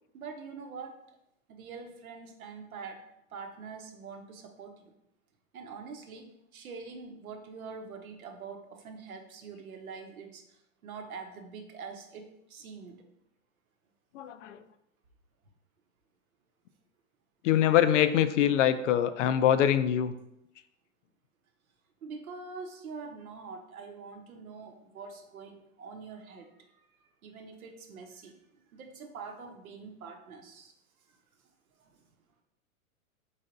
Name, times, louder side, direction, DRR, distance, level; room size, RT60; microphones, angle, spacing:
voice 1, 0.1-1.0 1.5-3.0 3.3-4.8 5.5-13.0 22.0-26.5 27.2-30.7 31.1-31.2 31.8-32.0, right 5 dB, 90° right, 5 dB, 0.9 m, -44 dB
voice 2, 14.1-14.6 17.4-20.1, left 10 dB, 60° left, 12 dB, 0.5 m, -24 dB
4.0 x 3.3 x 3.8 m, 0.82 s
hypercardioid pair, 130°, 41 cm